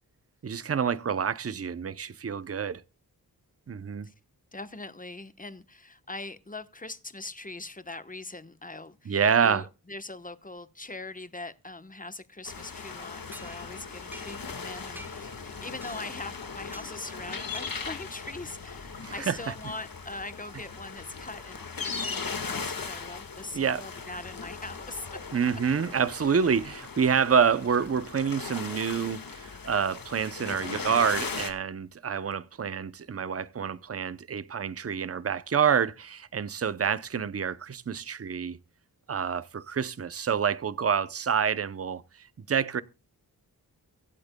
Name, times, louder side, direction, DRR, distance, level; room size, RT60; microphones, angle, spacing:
voice 1, 0.4-2.8 3.7-4.1 9.1-9.6 19.0-19.4 23.5-23.8 25.3-38.6 39.1-42.0 42.5-42.8, right 7 dB, 40° right, 0.7 m, -27 dB
voice 2, 4.5-25.1, left 2 dB, 20° left, 1.1 m, -41 dB
sound 1, 12.4-31.5, left 5 dB, 65° left, 1.7 m, -38 dB
sound 2, 13.3-14.6 15.0-15.4 15.8-16.2 16.7-17.0 17.5-18.1, right 1 dB, 5° right, 0.8 m, -49 dB
24.0 x 8.6 x 2.2 m
wide cardioid pair, 65°, 38 cm